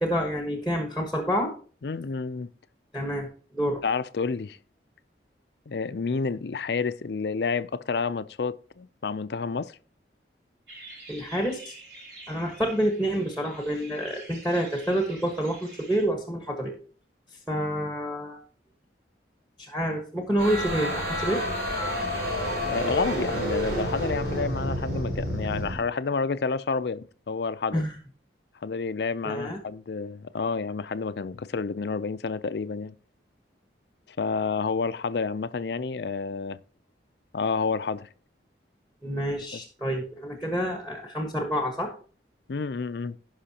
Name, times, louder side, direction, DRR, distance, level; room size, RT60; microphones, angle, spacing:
voice 1, 0.0-1.5 2.9-3.3 3.5-3.8 11.1-11.7 12.3-16.7 17.5-18.4 19.6-21.4 27.7-27.9 29.2-29.6 39.0-41.9, equal, 5° right, 1.3 m, -28 dB
voice 2, 1.8-2.5 3.8-4.6 5.7-9.8 22.7-27.8 28.6-33.0 34.2-36.6 37.3-38.1 39.5-39.6 42.5-43.2, left 4 dB, 70° left, 0.5 m, -29 dB
sound 1, 10.7-16.0, right 2 dB, 80° right, 4.8 m, -47 dB
sound 2, 20.4-25.7, equal, 60° right, 5.5 m, -29 dB
16.5 x 5.6 x 2.8 m
head